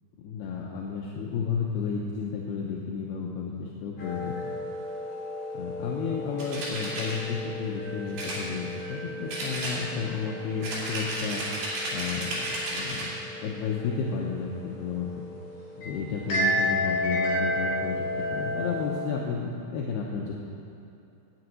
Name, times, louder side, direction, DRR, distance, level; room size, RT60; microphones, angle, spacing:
voice 1, 0.2-4.3 5.5-11.5 11.9-13.1 13.4-15.1 15.8-20.3, left 6 dB, 75° left, -2 dB, 2.5 m, -32 dB
sound 1, 4.0-19.0, left 1 dB, 45° left, 4.0 m, -33 dB
sound 2, 6.4-7.2 8.2-9.0 9.3-10.1 10.6-13.1, right 1 dB, 70° right, 5.0 m, -33 dB
9.0 x 8.8 x 9.2 m, 2.7 s
omnidirectional pair, 5.3 m